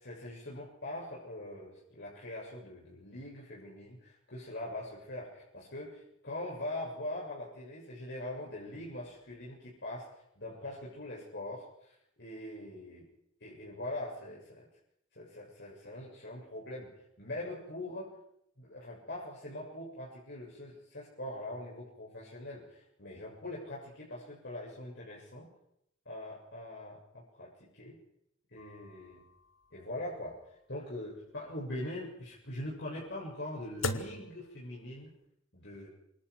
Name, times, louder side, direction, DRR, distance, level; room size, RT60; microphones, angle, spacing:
voice 1, 0.0-10.1 10.4-13.1 13.4-14.7 15.1-18.2 18.6-25.5 26.1-28.0 28.5-29.2 29.7-30.4 30.7-35.1 35.5-35.9, left 1 dB, 60° left, -5 dB, 7.4 m, -42 dB
sound 1, 28.6-35.2, left 2 dB, 85° left, 2.2 m, -43 dB
28.5 x 26.5 x 4.8 m, 0.76 s
head